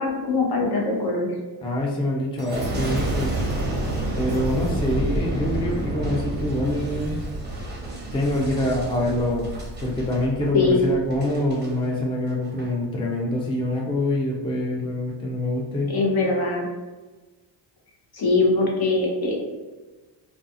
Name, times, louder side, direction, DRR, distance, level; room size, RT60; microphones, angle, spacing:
voice 1, 0.0-1.3 10.5-10.8 15.8-16.7 18.1-19.5, left 3 dB, 50° left, -1 dB, 0.9 m, -22 dB
voice 2, 1.6-3.4 4.1-7.2 8.1-9.5 9.8-15.9, left 1 dB, 10° left, -2 dB, 0.4 m, -25 dB
Boom, 2.4-11.7 12.3-12.7, right 1 dB, 20° right, 0.7 m, -29 dB
2.3 x 2.3 x 2.7 m, 1.2 s
supercardioid pair, 70°, 48 cm